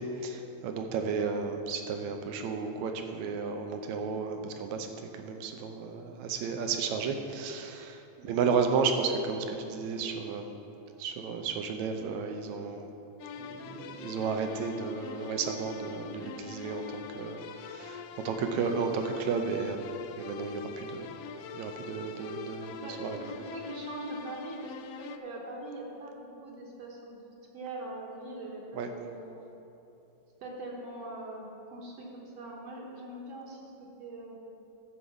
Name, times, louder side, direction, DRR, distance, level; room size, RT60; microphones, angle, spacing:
voice 1, 0.0-4.9 5.1-8.0 8.2-10.5 11.0-12.9 13.4-19.8 20.2-21.1 21.5-23.2 28.8-28.9, right 5 dB, 85° right, 5 dB, 2.0 m, -33 dB
voice 2, 8.2-8.5 22.8-27.2 27.5-29.6 30.4-31.5 31.7-33.7 34.0-34.5, right 2 dB, 65° right, -3 dB, 2.0 m, -42 dB
sound 1, 13.2-25.2, left 6 dB, 85° left, 1.4 m, -43 dB
12.0 x 4.8 x 7.0 m, 2.9 s
omnidirectional pair, 3.3 m